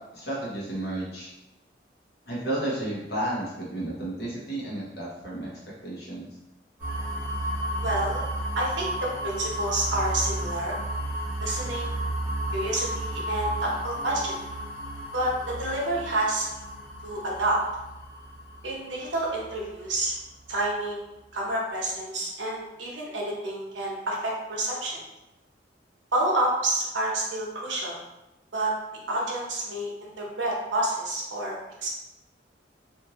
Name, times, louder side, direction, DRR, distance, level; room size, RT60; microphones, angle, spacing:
voice 1, 0.1-1.3 2.3-5.5 5.8-6.3, right 1 dB, 55° left, -6 dB, 0.9 m, -32 dB
sound 1, 6.8-20.6, right 1 dB, 10° right, 1.0 m, -33 dB
voice 2, 7.7-8.2 8.6-10.8 11.4-12.0 12.5-14.4 15.1-16.5 17.0-17.6 18.6-20.1 20.5-21.0 21.3-25.0 26.1-28.0 28.5-28.7 29.1-31.5 31.8-31.9, right 1 dB, 85° right, -3 dB, 0.8 m, -29 dB
2.6 x 2.5 x 2.9 m, 0.95 s
head